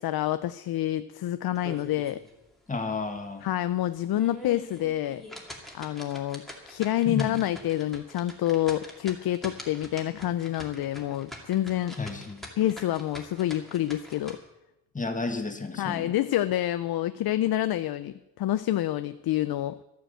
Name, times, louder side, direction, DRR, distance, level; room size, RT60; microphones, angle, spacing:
voice 1, 0.0-2.2 3.4-5.2 5.7-12.0 12.6-14.4 15.8-19.8, left 13 dB, 85° left, 13 dB, 0.5 m, -28 dB
sound 1, 1.6-2.3 2.7-2.8 3.3-3.4 4.0-14.4, left 1 dB, ahead, 2.3 m, -44 dB
voice 2, 2.7-3.4 7.0-7.5 12.0-12.4 14.9-16.1, left 3 dB, 20° left, 5 dB, 1.7 m, -32 dB
13.0 x 9.2 x 7.9 m, 0.95 s
wide cardioid pair, 125°, 36 cm